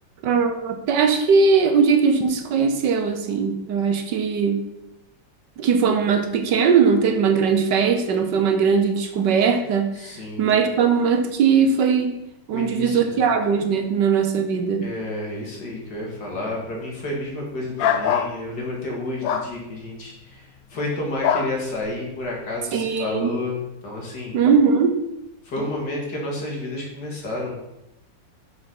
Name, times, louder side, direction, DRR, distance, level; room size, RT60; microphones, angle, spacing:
voice 1, 0.2-4.6 5.6-12.2 12.5-14.8 22.7-23.3 24.3-25.0, right 6 dB, 70° right, 7 dB, 1.5 m, -20 dB
voice 2, 10.0-10.5 12.5-13.3 14.8-24.4 25.4-27.6, left 2 dB, 65° left, -2 dB, 2.7 m, -30 dB
sound 1, 17.8-18.3 19.2-19.5 21.2-21.5, left 8 dB, 80° left, 1.4 m, -22 dB
6.8 x 6.5 x 5.6 m, 0.89 s
omnidirectional pair, 2.0 m